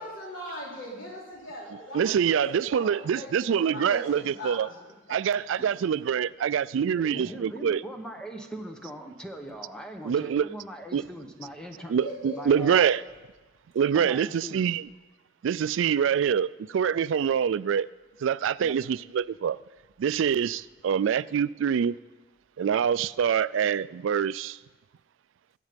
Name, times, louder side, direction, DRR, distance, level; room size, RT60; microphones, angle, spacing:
voice 1, 0.0-4.8 5.5-5.6 7.1-7.2 12.0-13.0, equal, 75° left, 3.5 m, -40 dB
voice 2, 1.9-4.7 5.1-7.8 10.0-10.5 10.9-11.0 11.9-13.0 13.8-14.8 15.4-17.9 18.2-19.6 20.0-21.9 22.6-24.6, right 8 dB, 65° right, 0.3 m, -25 dB
voice 3, 6.9-11.9 12.3-12.9 13.9-14.7 18.6-18.8, equal, 5° left, 0.9 m, -41 dB
22.0 x 8.3 x 5.1 m
head